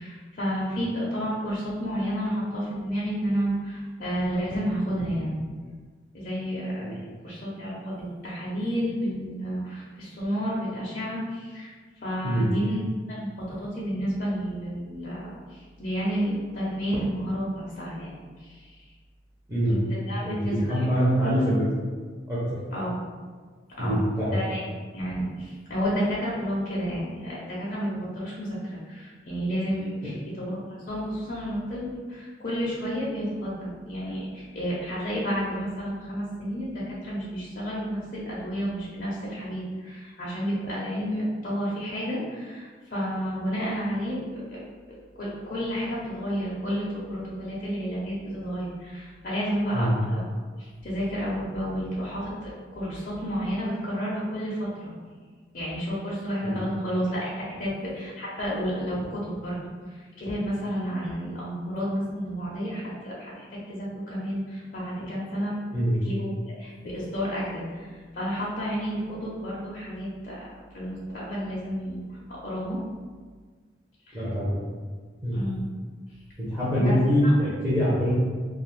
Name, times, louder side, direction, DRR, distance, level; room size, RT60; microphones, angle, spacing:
voice 1, 0.0-5.4 6.1-7.0 7.2-11.7 12.0-12.8 13.1-18.1 18.4-18.9 19.6-20.9 22.7-22.9 23.8-24.7 24.9-30.6 30.9-44.6 45.2-50.2 50.6-54.9 55.5-59.6 59.9-65.6 66.0-70.5 70.7-72.8 74.1-74.2 75.3-75.7 76.7-77.0 77.2-77.3, equal, 45° left, -7 dB, 0.5 m, -31 dB
voice 2, 20.2-21.7 22.3-22.4 23.8-24.3 49.7-49.9 56.4-56.5 65.7-66.0 74.1-74.5 75.2-75.4 76.4-78.1, equal, 15° right, -10 dB, 0.5 m, -24 dB
2.3 x 2.3 x 3.1 m, 1.5 s
head